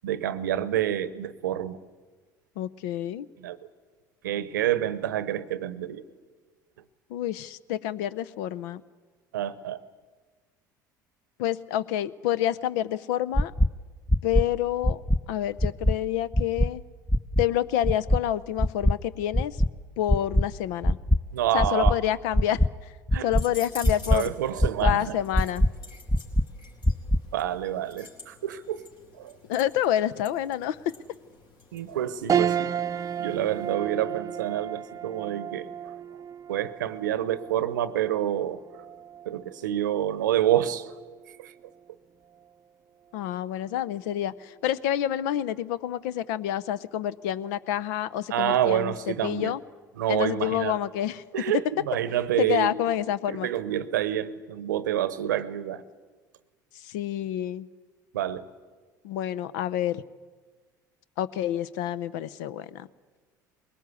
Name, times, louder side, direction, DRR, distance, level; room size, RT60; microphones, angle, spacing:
voice 1, 0.0-1.8 3.4-3.6 4.2-6.0 9.3-9.8 21.3-22.0 23.1-23.3 24.1-25.2 27.3-28.9 29.2-29.3 31.7-32.7 33.2-35.7 36.5-38.6 39.3-40.9 41.4-41.5 48.3-49.5 50.0-50.8 51.3-52.8 53.3-55.8 58.1-58.4, right 11 dB, 85° right, 15 dB, 0.8 m, -28 dB
voice 2, 2.6-3.3 7.1-8.8 11.4-13.5 14.2-15.0 15.3-16.8 17.4-19.6 20.0-21.0 21.5-22.9 23.2-24.3 24.8-25.6 29.5-30.8 43.1-49.6 50.1-51.2 52.4-53.5 56.7-57.7 59.0-60.0 61.2-62.9, left 11 dB, 75° left, 17 dB, 0.6 m, -28 dB
sound 1, 13.4-13.7 14.1-14.4 14.8-15.2 15.6-15.9 16.3-16.7 17.1-17.4 17.8-18.2 18.6-18.9 19.3-19.7 20.1-20.4 20.8-21.2 21.6-21.9 22.3-22.7 23.1-23.4 23.8-24.2 24.6-24.9 25.3-25.7 26.1-26.4 26.8-27.2, equal, 5° left, 0.6 m, -21 dB
sound 2, 23.3-33.7, left 3 dB, 55° left, 4.0 m, -49 dB
sound 3, 32.3-41.9 42.4-42.5 43.8-44.3, right 8 dB, 35° right, 0.7 m, -33 dB
21.0 x 18.5 x 8.3 m, 1.4 s
hypercardioid pair, 70°, 10 cm